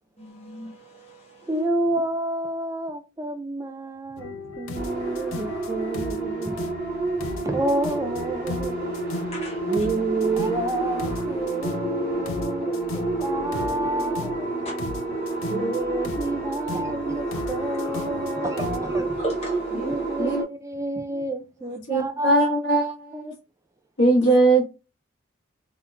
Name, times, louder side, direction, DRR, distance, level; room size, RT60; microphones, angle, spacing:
voice 1, 0.2-1.5 9.3-9.9 14.6-14.7 15.2-15.7 19.2-19.9, equal, 30° left, 1.3 m, -36 dB
voice 2, 1.5-6.7 7.1-8.9 9.7-14.5 15.5-19.2 19.7-22.5 22.7-23.4 24.0-24.2, right 2 dB, 15° right, 0.4 m, -29 dB
sound 1, 4.2-18.8, left 3 dB, 85° left, 0.4 m, -35 dB
sound 2, 4.7-20.4, right 3 dB, 40° right, 1.1 m, -30 dB
voice 3, 21.9-22.9 24.0-24.6, right 2 dB, 65° left, 1.2 m, -19 dB
3.5 x 2.8 x 2.3 m
head